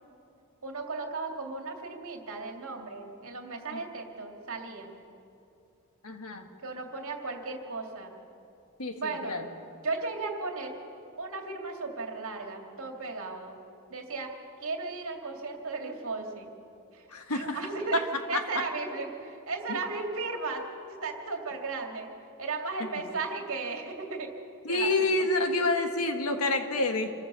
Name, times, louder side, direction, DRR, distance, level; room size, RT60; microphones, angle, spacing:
voice 1, 0.6-5.0 6.6-8.1 9.0-9.4 9.8-10.8 11.2-13.6 13.9-14.3 14.6-16.5 16.9-17.1 17.3-22.1 22.4-24.3 24.7-25.1, right 3 dB, 65° right, 2 dB, 2.5 m, -35 dB
voice 2, 6.0-6.4 8.8-9.5 17.1-17.6 18.3-18.4 19.7-19.8 24.7-27.1, left 2 dB, 75° left, 6 dB, 1.7 m, -28 dB
26.5 x 14.0 x 6.9 m, 2.7 s
head